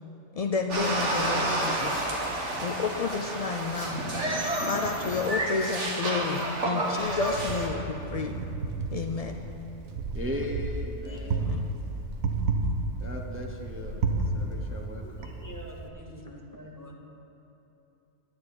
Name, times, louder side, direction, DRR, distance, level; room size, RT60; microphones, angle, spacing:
voice 1, 0.4-2.0 2.6-4.1 4.7-8.4 8.9-9.4 11.4-11.7, left 4 dB, 65° left, 3 dB, 0.3 m, -31 dB
sound 1, 0.7-7.7, right 1 dB, 60° right, 2.0 m, -30 dB
Wind, 7.0-15.9, right 3 dB, 80° right, 1.5 m, -32 dB
voice 2, 10.1-12.0 13.0-15.4 16.5-16.6, left 1 dB, 10° right, 0 dB, 0.7 m, -38 dB
voice 3, 15.0-17.0, equal, 15° left, -2 dB, 1.6 m, -46 dB
11.5 x 6.9 x 9.6 m, 2.9 s
omnidirectional pair, 1.4 m